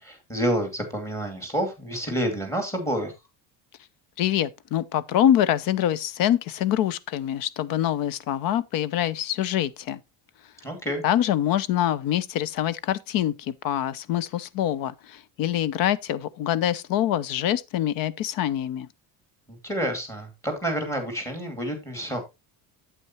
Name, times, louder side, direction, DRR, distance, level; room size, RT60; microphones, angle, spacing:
voice 1, 0.0-3.1 10.6-11.0 19.5-22.2, equal, 5° left, 2.5 m, -29 dB
voice 2, 4.2-10.0 11.0-18.9, left 11 dB, 55° left, 0.8 m, -25 dB
8.6 x 8.5 x 3.0 m
cardioid pair, 170°, 40 cm